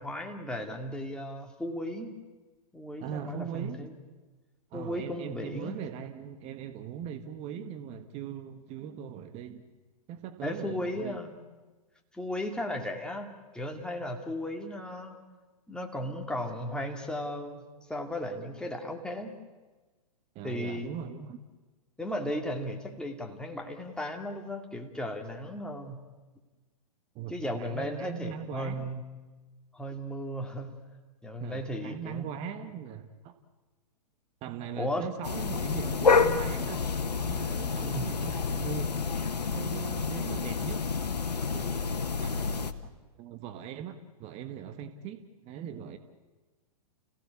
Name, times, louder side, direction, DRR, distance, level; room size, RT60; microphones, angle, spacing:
voice 1, 0.0-2.1 2.7-3.9 4.7-5.7 10.4-11.3 12.1-13.3 13.5-15.2 15.7-19.3 20.4-20.9 22.0-26.0 27.3-29.0 29.7-30.8 31.2-32.3 34.8-35.1 37.8-38.1, left 1 dB, 5° left, 2 dB, 2.5 m, -35 dB
voice 2, 3.0-3.9 4.7-9.7 10.1-11.2 20.3-21.4 27.1-28.9 31.4-33.4 34.4-36.8 37.2-39.2 39.5-40.9 41.5-41.9 42.1-46.0, right 8 dB, 30° right, 9 dB, 1.5 m, -40 dB
sound 1, 35.2-42.7, left 5 dB, 90° left, 1.3 m, -29 dB
29.5 x 16.5 x 8.4 m, 1.2 s
hypercardioid pair, 120°, 20 cm